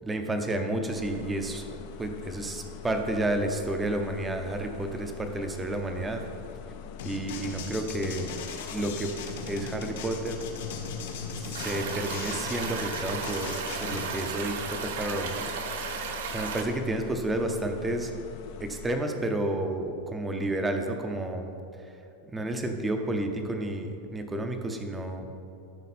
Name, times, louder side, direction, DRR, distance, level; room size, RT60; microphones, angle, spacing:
voice 1, 0.0-6.2 7.0-8.3 8.7-9.1 9.5-10.4 11.4-13.5 13.8-15.9 16.3-18.1 18.6-21.5 21.8-21.9 22.2-25.3, right 1 dB, 10° right, 5 dB, 0.6 m, -31 dB
sound 1, 0.9-18.9, left 8 dB, 40° left, 0.5 m, -44 dB
sound 2, 7.0-14.1, left 5 dB, 70° left, 1.4 m, -38 dB
sound 3, 11.5-16.6, right 5 dB, 75° right, 1.2 m, -34 dB
13.5 x 6.3 x 4.2 m, 2.8 s
supercardioid pair, 175°, 0 cm